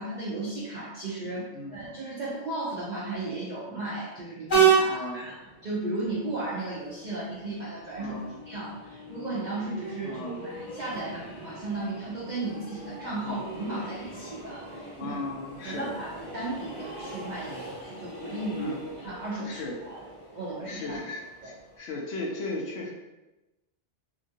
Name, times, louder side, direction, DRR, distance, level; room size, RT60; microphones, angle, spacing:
voice 1, 0.0-5.4 5.6-15.2 15.6-19.6 19.9-20.0 20.3-21.0, right 2 dB, 55° right, -6 dB, 0.5 m, -35 dB
Train, 4.5-21.8, right 6 dB, 45° left, 1.1 m, -33 dB
voice 2, 4.9-5.3 8.0-8.4 10.0-10.4 10.9-11.1 13.3-13.4 15.0-15.9 17.4-17.6 18.6-18.8 19.4-19.8 20.6-22.9, left 2 dB, 70° left, -1 dB, 0.8 m, -37 dB
2.8 x 2.5 x 2.6 m, 1.0 s
omnidirectional pair, 1.2 m